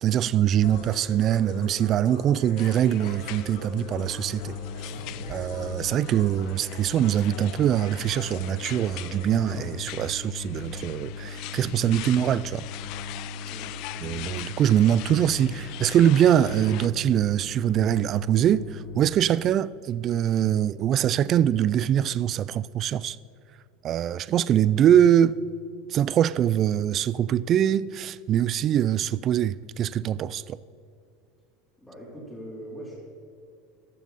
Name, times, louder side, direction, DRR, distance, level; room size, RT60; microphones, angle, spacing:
voice 1, 0.0-4.6 5.3-12.6 14.0-23.2 23.8-25.4 25.9-30.6, right 10 dB, 35° right, 0.3 m, -23 dB
sound 1, 0.6-9.8, left 2 dB, 80° left, 3.2 m, -43 dB
sound 2, 2.6-16.9, left 18 dB, 55° left, 0.4 m, -42 dB
sound 3, 2.9-19.0, left 3 dB, 30° left, 2.8 m, -39 dB
voice 2, 31.8-32.9, right 1 dB, 5° left, 3.2 m, -41 dB
14.0 x 12.0 x 4.1 m
supercardioid pair, 135°, 0 cm